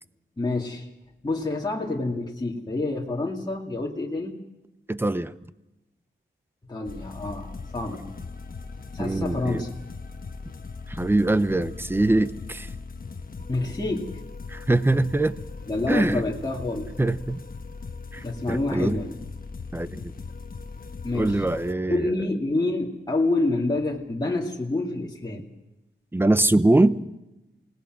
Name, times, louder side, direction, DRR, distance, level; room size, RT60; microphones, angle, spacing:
voice 1, 0.4-0.9 1.2-4.4 6.7-8.1 8.9-9.7 13.5-14.1 15.7-16.9 18.2-19.1 21.0-21.4 21.9-25.5, left 2 dB, 20° left, -2 dB, 2.3 m, -27 dB
voice 2, 4.9-5.3 9.0-9.6 10.9-12.7 14.5-15.4 15.9-16.2 17.0-17.4 18.1-19.0 19.7-20.1 21.1-22.1 26.1-27.0, right 2 dB, 10° right, 13 dB, 0.8 m, -23 dB
sound 1, 6.8-21.7, left 4 dB, 45° left, 1.2 m, -39 dB
28.0 x 19.0 x 6.2 m, 0.97 s
wide cardioid pair, 130°, 21 cm